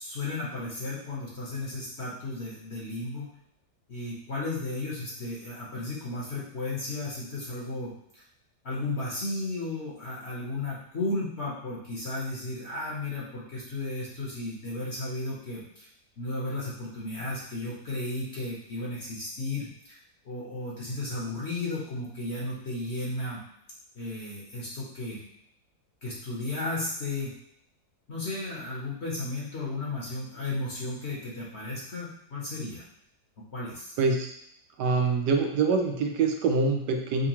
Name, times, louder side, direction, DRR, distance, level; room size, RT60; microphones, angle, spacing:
voice 1, 0.0-3.3 3.9-8.2 8.6-15.9 16.2-20.0 20.2-23.4 23.9-25.2 26.0-27.3 28.1-32.8 33.5-34.0, left 2 dB, 50° left, -5 dB, 1.0 m, -34 dB
voice 2, 34.0-34.3 34.8-37.3, right 4 dB, 90° right, 3 dB, 1.3 m, -25 dB
5.2 x 2.3 x 2.9 m, 0.75 s
omnidirectional pair, 1.7 m